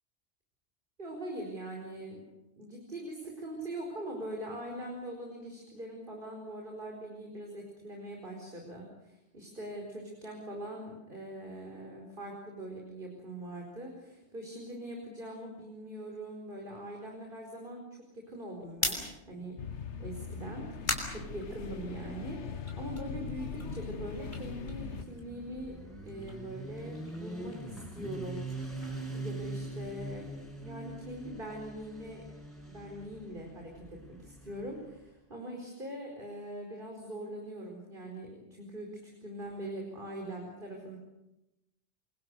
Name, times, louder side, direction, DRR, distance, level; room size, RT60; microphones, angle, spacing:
voice 1, 1.0-2.2 2.5-19.6 20.0-25.8 26.0-28.5 29.1-30.3 30.6-32.2 32.7-41.0, right 1 dB, 50° right, 0 dB, 5.0 m, -42 dB
sound 1, 18.6-22.1 22.5-25.5 25.8-29.9, left 1 dB, 45° left, 5.6 m, -41 dB
sound 2, 19.6-25.0, left 6 dB, 80° left, 1.6 m, -41 dB
Motorcycle, 23.4-35.0, right 2 dB, ahead, 7.0 m, -43 dB
29.5 x 23.5 x 6.8 m, 0.93 s
omnidirectional pair, 1.2 m